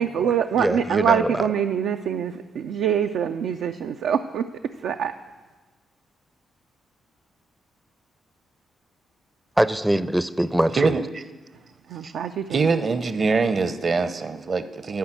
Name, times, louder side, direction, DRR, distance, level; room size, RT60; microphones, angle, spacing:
voice 1, 0.0-5.1 11.9-12.7, right 8 dB, 70° right, 6 dB, 0.3 m, -25 dB
voice 2, 0.6-1.4 9.6-11.0, right 1 dB, 10° right, 16 dB, 0.5 m, -23 dB
voice 3, 12.5-15.0, right 4 dB, 50° right, 12 dB, 0.7 m, -23 dB
10.0 x 5.6 x 7.9 m, 1.3 s
hypercardioid pair, 40°, 0 cm